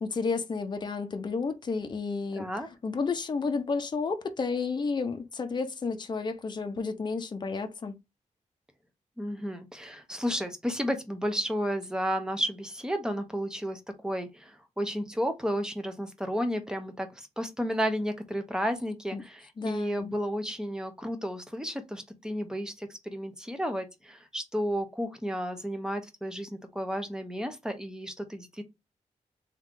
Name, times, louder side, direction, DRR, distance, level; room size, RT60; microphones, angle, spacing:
voice 1, 0.0-8.0 19.1-19.2 19.6-20.1, left 4 dB, 35° left, 0.7 m, -31 dB
voice 2, 2.4-2.7 9.2-28.6, equal, 5° right, 0.8 m, -32 dB
3.7 x 3.1 x 3.7 m
wide cardioid pair, 145°, 13 cm